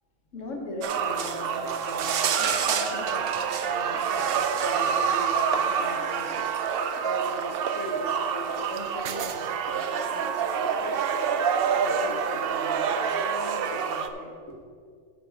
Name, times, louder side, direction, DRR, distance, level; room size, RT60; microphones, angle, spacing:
voice 1, 0.3-14.6, left 1 dB, 70° left, 1 dB, 1.6 m, -39 dB
sound 1, 0.8-14.1, right 7 dB, 60° right, 0.6 m, -27 dB
9.5 x 4.8 x 6.3 m, 2.1 s
omnidirectional pair, 1.3 m